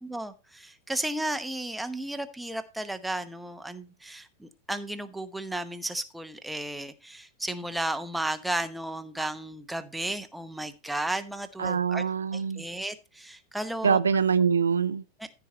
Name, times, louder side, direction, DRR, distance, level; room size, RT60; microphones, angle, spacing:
voice 1, 0.0-12.1 12.3-14.0 15.2-15.4, right 1 dB, 5° right, 1.0 m, -34 dB
voice 2, 11.6-12.6 13.8-15.0, right 6 dB, 70° right, 0.5 m, -24 dB
14.5 x 4.8 x 4.1 m
figure-of-eight pair, 90°, 0 cm